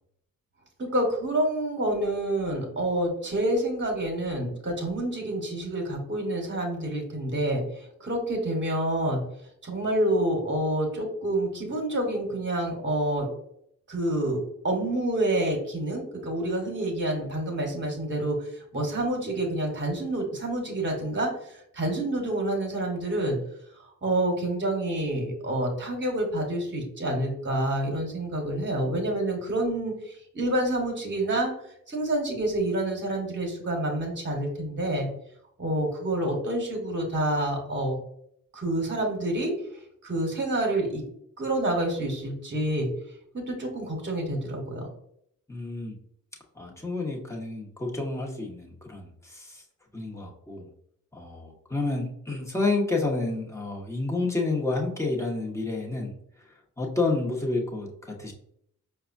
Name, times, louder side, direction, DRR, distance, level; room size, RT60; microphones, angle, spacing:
voice 1, 0.8-9.2 9.6-13.3 13.9-14.4 14.6-23.4 24.0-31.5 31.9-35.1 35.6-38.0 38.5-39.5 40.0-41.0 41.4-42.9 43.3-44.9, right 1 dB, 35° right, 1 dB, 1.2 m, -28 dB
voice 2, 45.5-46.0 46.6-49.6 49.9-50.7 51.1-56.1 56.8-58.3, left 3 dB, 10° left, -1 dB, 1.1 m, -29 dB
4.8 x 2.3 x 2.5 m, 0.70 s
supercardioid pair, 45°, 35 cm